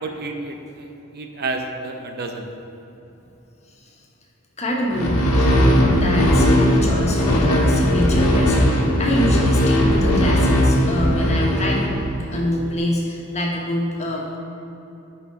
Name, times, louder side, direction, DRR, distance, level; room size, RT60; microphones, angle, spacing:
voice 1, 0.0-2.5, right 3 dB, 50° right, 4 dB, 0.6 m, -30 dB
voice 2, 4.6-11.9 12.3-14.4, left 1 dB, 30° left, -2 dB, 1.3 m, -25 dB
sound 1, 4.9-12.4, equal, 85° left, 1.1 m, -18 dB
7.0 x 5.2 x 5.9 m, 2.9 s
head